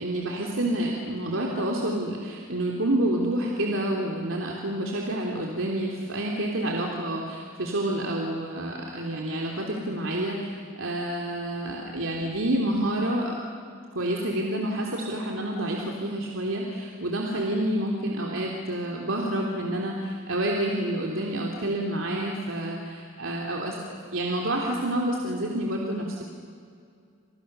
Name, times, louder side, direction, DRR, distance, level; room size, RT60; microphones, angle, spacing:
voice 1, 0.0-13.4 13.9-26.2, right 1 dB, 75° right, -1 dB, 3.2 m, -28 dB
29.5 x 28.0 x 6.9 m, 2.4 s
head